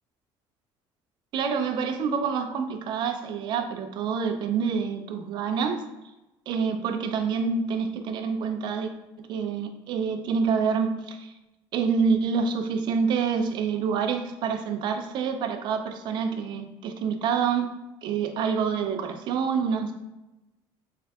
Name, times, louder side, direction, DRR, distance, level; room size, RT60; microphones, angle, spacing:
voice 1, 1.3-5.8 6.5-8.9 9.3-11.3 11.7-17.7 18.0-19.9, right 6 dB, 45° right, 6 dB, 0.4 m, -27 dB
3.5 x 2.4 x 3.4 m, 1.0 s
cardioid pair, 175°, 11 cm